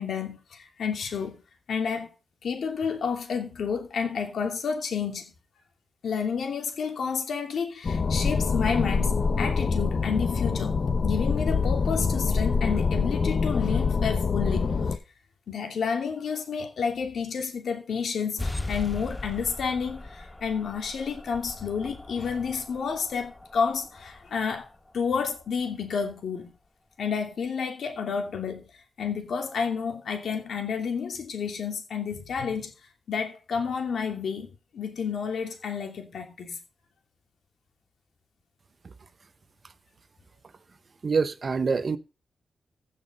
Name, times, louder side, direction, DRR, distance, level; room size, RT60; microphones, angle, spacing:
voice 1, 0.0-1.4 1.7-2.1 2.4-5.3 6.0-10.7 11.0-15.0 15.5-24.7 24.9-26.5 27.0-28.7 29.0-32.7 33.1-36.6, left 6 dB, 75° left, 2.7 m, -30 dB
sound 1, 7.8-15.0, left 5 dB, 45° left, 0.9 m, -25 dB
sound 2, 18.4-25.5, left 2 dB, 15° left, 0.7 m, -39 dB
voice 2, 41.0-42.0, right 5 dB, 40° right, 0.8 m, -25 dB
15.5 x 5.8 x 5.3 m
wide cardioid pair, 145°, 0 cm